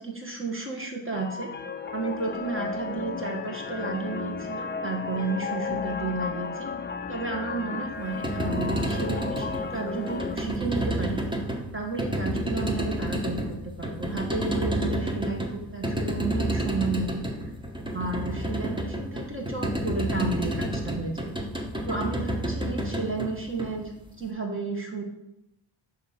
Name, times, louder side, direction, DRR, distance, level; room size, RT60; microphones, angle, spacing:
voice 1, 0.0-1.5 1.9-6.7 7.1-11.2 11.7-17.3 17.9-21.3 21.9-23.9 24.2-25.0, right 3 dB, 25° right, 0 dB, 1.4 m, -32 dB
sound 1, 1.1-10.4, left 5 dB, 25° left, 0.4 m, -34 dB
sound 2, 8.0-24.2, right 1 dB, 10° right, 1.0 m, -30 dB
6.6 x 2.9 x 5.1 m, 0.85 s
cardioid pair, 55°, 49 cm